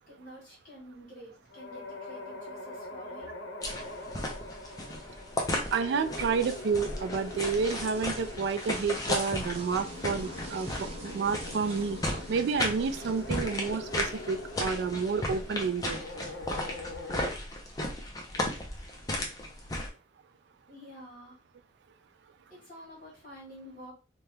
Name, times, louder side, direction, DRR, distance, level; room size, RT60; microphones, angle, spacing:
voice 1, 0.1-3.4 19.5-19.6 20.7-21.4 22.5-23.9, equal, 45° left, -7 dB, 1.4 m, -49 dB
sound 1, 1.5-17.3, left 2 dB, 75° left, 0.7 m, -43 dB
sound 2, 3.6-19.9, left 1 dB, 20° left, 0.5 m, -35 dB
voice 2, 5.7-12.0 12.3-16.0, right 5 dB, 70° right, 10 dB, 0.3 m, -30 dB
sound 3, 6.7-14.5, right 2 dB, 35° right, 0.8 m, -49 dB
2.8 x 2.2 x 3.2 m, 0.34 s
head